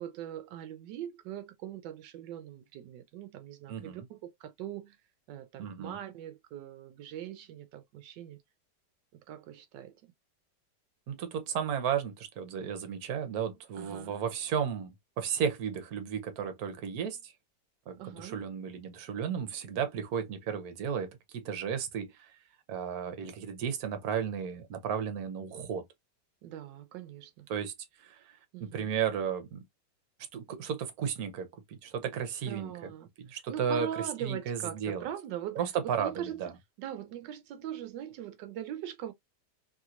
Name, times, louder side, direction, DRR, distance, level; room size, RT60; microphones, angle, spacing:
voice 1, 0.0-5.0 5.3-8.4 9.3-9.9 13.7-14.1 18.0-18.4 26.4-27.5 28.5-28.9 32.5-35.6 36.0-36.4 36.8-39.1, right 11 dB, 85° right, 1.2 m, -41 dB
voice 2, 3.7-4.1 5.6-6.0 11.1-17.3 17.9-22.3 22.7-25.8 27.5-27.7 28.0-28.2 28.6-29.6 30.3-32.9 33.2-33.9 34.2-35.1 35.6-36.5, right 7 dB, 60° right, 1.3 m, -34 dB
3.3 x 2.8 x 2.4 m
omnidirectional pair, 1.9 m